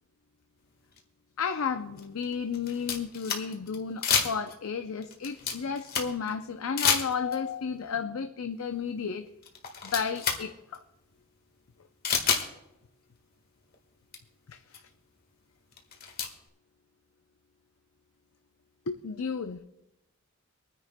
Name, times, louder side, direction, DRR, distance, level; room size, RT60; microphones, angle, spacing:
sound 1, 1.0-1.1 1.9-3.8 4.0-4.7 5.0-6.3 6.8-7.5 8.9-9.0 9.4-10.4 10.7-10.8 12.0-12.5 13.7-13.8 14.1-14.2 14.7-14.8 15.7-16.3, left 6 dB, 45° left, 1.6 m, -28 dB
voice 1, 1.4-9.3 9.8-10.8 14.5-14.8 18.9-19.6, left 6 dB, 85° left, 7 dB, 0.6 m, -33 dB
25.5 x 9.9 x 2.2 m, 0.91 s
head